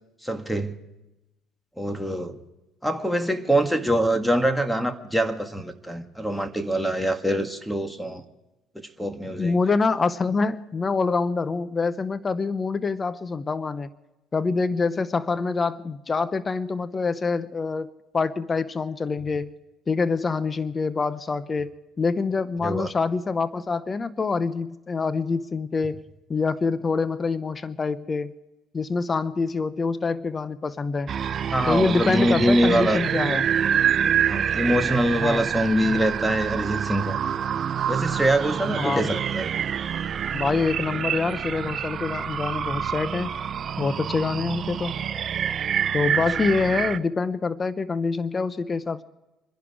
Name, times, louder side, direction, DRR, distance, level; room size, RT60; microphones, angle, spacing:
voice 1, 0.2-0.8 1.8-2.4 2.8-8.2 9.0-9.6 22.6-22.9 31.5-33.0 34.3-37.2 37.9-39.5, right 1 dB, ahead, 7 dB, 1.8 m, -24 dB
voice 2, 9.4-13.9 14.3-19.5 19.9-26.0 26.3-28.3 28.7-31.1 31.7-33.5 35.2-35.5 38.8-39.1 40.3-43.4 43.8-45.0 45.9-49.0, left 4 dB, 30° left, 15 dB, 0.8 m, -26 dB
sound 1, 31.1-47.0, right 8 dB, 50° right, 0.6 m, -27 dB
26.5 x 11.0 x 4.7 m, 1.0 s
hypercardioid pair, 65°, 0 cm